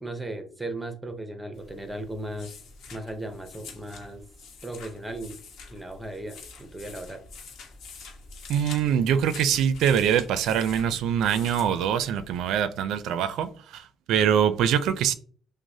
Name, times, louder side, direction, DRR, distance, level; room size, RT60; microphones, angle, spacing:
voice 1, 0.0-2.6 2.9-4.2 4.6-5.4 5.7-7.2, right 1 dB, 5° right, 0.6 m, -36 dB
sound 1, 1.5-12.5, left 4 dB, 65° left, 1.1 m, -46 dB
voice 2, 8.5-15.1, right 8 dB, 75° right, 0.4 m, -24 dB
6.0 x 2.0 x 2.7 m
cardioid pair, 170°, 0 cm